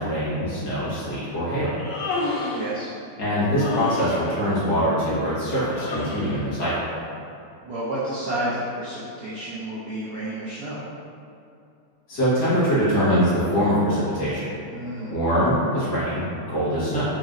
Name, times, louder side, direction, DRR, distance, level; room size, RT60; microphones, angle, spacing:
voice 1, 0.0-1.7 3.2-6.7 12.1-14.5 15.1-17.1, equal, 55° left, -12 dB, 2.1 m, -23 dB
Human voice, 1.7-2.7 3.5-4.3 5.7-6.4, left 3 dB, 90° left, 1.6 m, -30 dB
voice 2, 2.5-2.9 7.6-10.8 14.7-15.1, right 1 dB, 90° right, -9 dB, 0.7 m, -30 dB
5.3 x 2.9 x 2.5 m, 2.6 s
omnidirectional pair, 2.4 m